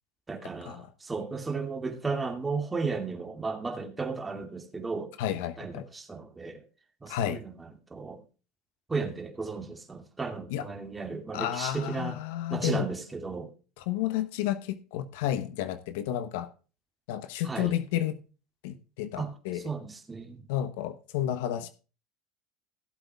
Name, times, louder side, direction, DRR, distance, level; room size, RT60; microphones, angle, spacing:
voice 1, 0.3-5.1 5.6-6.6 7.0-8.2 8.9-12.2 12.5-13.5 17.4-17.7 19.2-20.4, right 4 dB, 15° right, 2.4 m, -34 dB
voice 2, 5.2-5.8 7.1-7.4 10.5-10.6 11.3-12.9 13.8-16.5 17.1-18.2 18.6-19.7 20.5-21.7, left 12 dB, 80° left, 1.0 m, -31 dB
15.5 x 8.0 x 3.5 m
supercardioid pair, 110°, 0 cm